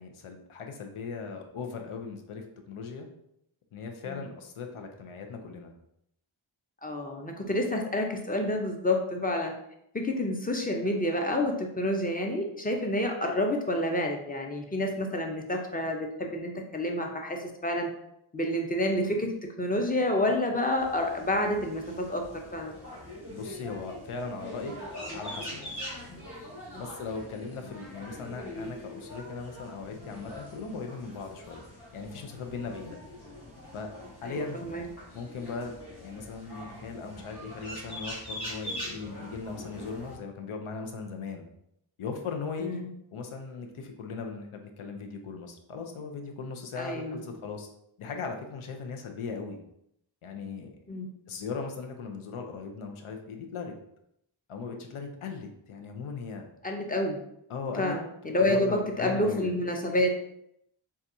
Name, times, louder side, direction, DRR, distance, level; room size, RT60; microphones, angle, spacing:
voice 1, 0.0-3.1 3.7-5.7 23.3-24.7 25.1-25.6 26.8-31.6 31.9-33.0 33.7-33.9 34.2-34.7 35.1-35.7 36.0-41.5 42.0-42.8 43.1-47.7 48.0-49.6 50.2-50.7 51.3-53.7 54.5-56.5 57.5-58.0 58.3-59.5, left 4 dB, 85° left, 4 dB, 0.6 m, -38 dB
voice 2, 6.8-9.5 9.9-17.9 18.3-22.2 22.5-22.7 26.1-26.2 26.7-26.8 34.2-34.8 42.6-42.9 46.8-47.2 50.9-51.1 56.6-57.2 57.8-60.1, left 1 dB, 20° left, 3 dB, 0.6 m, -29 dB
sound 1, 20.8-40.1, left 1 dB, 50° left, 1.5 m, -43 dB
4.0 x 2.3 x 2.6 m, 0.76 s
cardioid pair, 40°, 49 cm